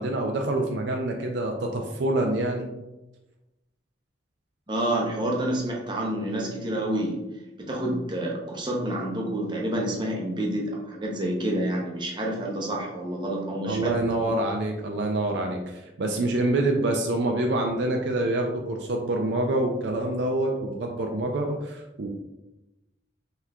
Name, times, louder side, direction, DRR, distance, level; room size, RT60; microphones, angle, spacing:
voice 1, 0.0-2.7 13.7-22.1, right 2 dB, 60° right, 2 dB, 0.4 m, -26 dB
voice 2, 4.7-7.2 7.6-13.9 14.2-14.3, right 1 dB, 25° right, -1 dB, 0.7 m, -28 dB
5.6 x 3.0 x 2.4 m, 1.0 s
head